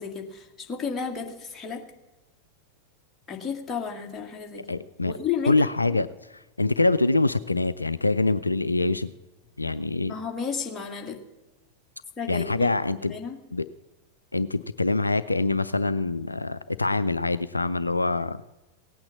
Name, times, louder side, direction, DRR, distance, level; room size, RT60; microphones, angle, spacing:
voice 1, 0.0-1.9 3.3-4.8 5.1-5.7 10.1-11.2 12.2-12.7 13.0-13.4, left 6 dB, 15° left, 1 dB, 2.2 m, -32 dB
voice 2, 4.7-5.1 5.4-6.1 6.6-9.1 9.6-10.1 12.3-13.1 13.5-13.6 14.3-18.4, left 2 dB, 80° left, 15 dB, 0.4 m, -24 dB
17.5 x 8.8 x 7.2 m, 1.1 s
figure-of-eight pair, 90°, 0 cm